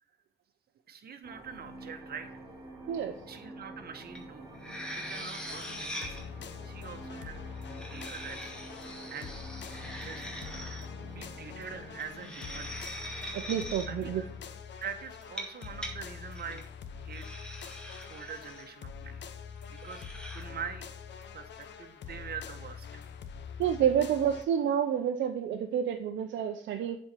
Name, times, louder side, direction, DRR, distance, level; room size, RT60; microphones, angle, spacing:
voice 1, 0.9-2.3 2.7-2.8 3.3-4.5 4.8-6.3 6.6-7.4 7.8-8.5 9.1-9.3 9.9-10.2 11.0-13.2 13.9-14.3 14.8-16.6 17.0-17.3 18.1-19.3 19.7-20.0 20.3-20.9 21.3-23.0, right 7 dB, 50° right, 6 dB, 1.5 m, -44 dB
sound 1, 1.2-14.6, right 1 dB, 20° right, 4.0 m, -48 dB
sound 2, 4.2-4.3 4.6-6.2 7.6-10.9 12.0-13.9 15.2-15.9 16.3-16.6 17.1-18.6 19.7-20.4, equal, 5° left, 2.2 m, -42 dB
sound 3, 5.5-24.5, left 7 dB, 65° left, 1.0 m, -44 dB
voice 2, 13.3-14.2 23.6-27.0, right 9 dB, 70° right, 5 dB, 0.7 m, -29 dB
7.8 x 4.4 x 6.8 m, 0.65 s
cardioid pair, 90°, 20 cm